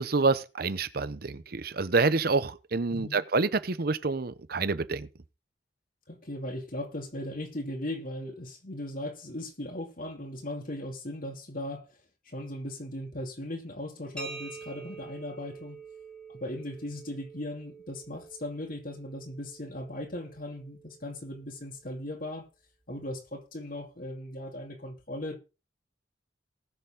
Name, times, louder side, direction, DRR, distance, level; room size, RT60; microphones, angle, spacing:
voice 1, 0.0-5.1, right 3 dB, 55° right, 0.8 m, -27 dB
voice 2, 2.9-3.2 6.1-11.9 12.3-15.8 16.3-22.5 22.9-25.4, left 1 dB, 50° left, 2.5 m, -38 dB
sound 1, 14.2-21.7, right 4 dB, 5° left, 2.5 m, -47 dB
19.0 x 6.8 x 3.7 m
head